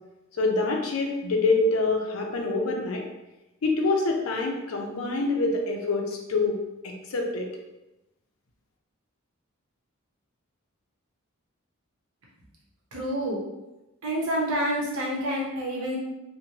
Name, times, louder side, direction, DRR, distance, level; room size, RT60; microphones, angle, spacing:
voice 1, 0.4-3.1 3.6-6.6 6.8-7.5, left 3 dB, 80° left, 1 dB, 0.5 m, -26 dB
voice 2, 12.9-13.4 14.0-16.0, equal, 85° right, -3 dB, 0.8 m, -28 dB
3.0 x 2.1 x 2.7 m, 0.97 s
head